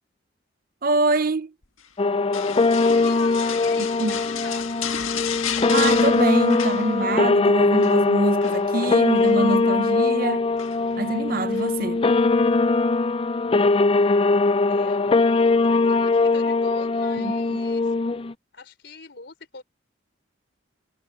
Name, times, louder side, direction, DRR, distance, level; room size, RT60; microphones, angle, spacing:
voice 1, 0.8-1.5 4.0-4.1 5.7-10.4 11.0-12.1, right 2 dB, 45° right, 0.7 m, -25 dB
sound 1, 2.0-18.3, left 3 dB, 25° left, 0.4 m, -21 dB
sound 2, 2.3-7.3 7.6-8.0 8.4-9.4 10.6-11.0 11.5-11.7, left 8 dB, 90° left, 1.7 m, -32 dB
voice 2, 2.7-4.7 14.7-17.9 18.5-19.6, left 3 dB, 60° left, 4.9 m, -41 dB
head